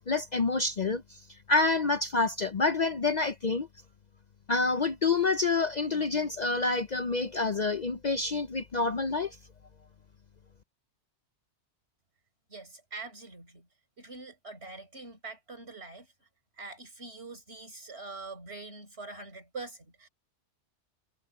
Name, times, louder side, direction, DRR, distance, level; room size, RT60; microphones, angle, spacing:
voice 1, 0.1-1.0 1.5-3.7 4.5-9.4, left 3 dB, 45° left, 0.7 m, -27 dB
voice 2, 12.5-13.7 14.0-16.1 16.6-20.1, right 3 dB, 65° right, 5.8 m, -44 dB
omnidirectional pair, 1.2 m